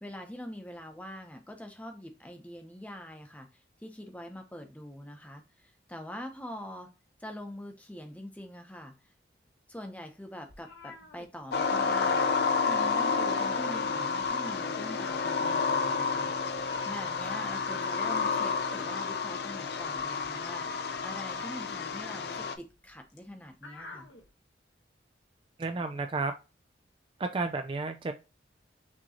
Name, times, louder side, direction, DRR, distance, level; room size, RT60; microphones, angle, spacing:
voice 1, 0.0-3.5 3.8-6.9 7.2-8.9 9.7-12.3 12.6-16.3 16.8-24.1, left 1 dB, 10° left, 5 dB, 0.8 m, -44 dB
sound 1, 10.5-12.0 12.2-12.5 12.8-13.9 14.2-24.3, left 3 dB, 80° left, 1.3 m, -52 dB
sound 2, 11.5-22.5, left 5 dB, 60° left, 0.5 m, -30 dB
voice 2, 25.6-26.3 27.2-28.1, right 3 dB, 30° right, 6 dB, 0.4 m, -32 dB
6.2 x 3.0 x 2.8 m, 0.30 s
head